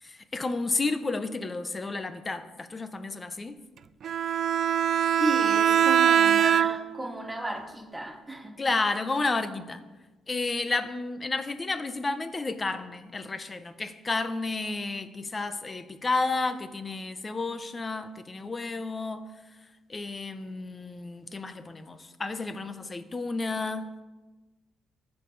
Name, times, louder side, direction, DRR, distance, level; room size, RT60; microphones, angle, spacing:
voice 1, 0.0-3.6 6.3-6.4 8.6-9.8 10.3-19.3 19.9-24.0, left 3 dB, 30° left, 10 dB, 0.7 m, -31 dB
Bowed string instrument, 4.0-7.0, right 9 dB, 60° right, 0.3 m, -22 dB
voice 2, 5.2-8.7, right 1 dB, 10° right, 4 dB, 1.1 m, -34 dB
14.5 x 4.8 x 3.9 m, 1.2 s
cardioid pair, 90°, 0 cm